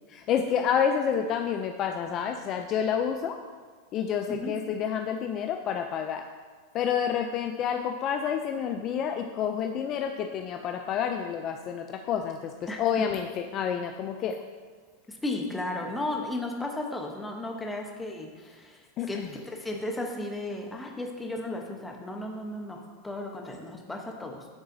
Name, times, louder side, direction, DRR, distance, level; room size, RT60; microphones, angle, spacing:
voice 1, 0.1-3.4 3.9-6.2 6.7-14.4 19.0-19.3, left 8 dB, 35° left, 5 dB, 0.4 m, -29 dB
voice 2, 15.1-19.2 19.5-24.5, left 2 dB, 5° left, 1 dB, 0.9 m, -35 dB
11.5 x 4.0 x 2.6 m, 1.5 s
supercardioid pair, 130°, 0 cm